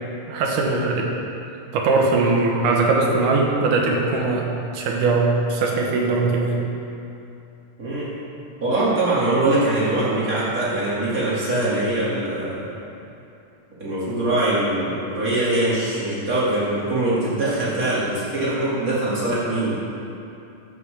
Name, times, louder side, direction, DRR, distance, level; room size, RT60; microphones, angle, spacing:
voice 1, 0.3-1.2 1.7-4.5 4.7-6.6, right 3 dB, 80° right, 0 dB, 2.7 m, -20 dB
voice 2, 7.8-8.1 8.6-12.8 13.8-19.8, right 2 dB, 30° right, -9 dB, 2.2 m, -22 dB
14.0 x 8.1 x 3.4 m, 2.7 s
omnidirectional pair, 3.7 m